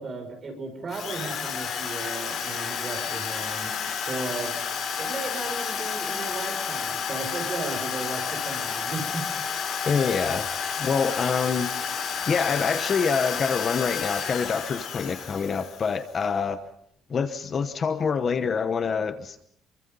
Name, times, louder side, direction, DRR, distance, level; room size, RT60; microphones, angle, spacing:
voice 1, 0.0-3.7 4.1-4.5 5.0-9.2, right 3 dB, 30° right, 6 dB, 6.1 m, -35 dB
Drill, 0.9-16.1, left 7 dB, 50° left, 6.1 m, -31 dB
voice 2, 9.9-11.7 12.3-16.6 17.1-19.4, left 5 dB, 30° left, 10 dB, 1.0 m, -26 dB
28.5 x 24.0 x 5.5 m, 0.71 s
cardioid pair, 175°, 0 cm